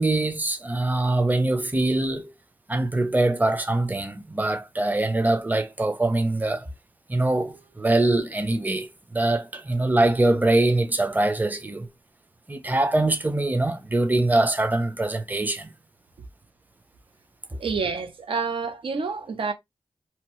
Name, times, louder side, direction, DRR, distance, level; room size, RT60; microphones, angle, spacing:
voice 1, 0.0-2.3 2.7-6.7 7.1-11.9 12.5-15.7, right 2 dB, 20° right, 0.7 m, -23 dB
voice 2, 17.6-19.5, right 5 dB, 80° right, 0.7 m, -28 dB
2.9 x 2.1 x 3.0 m
cardioid pair, 50°, 9 cm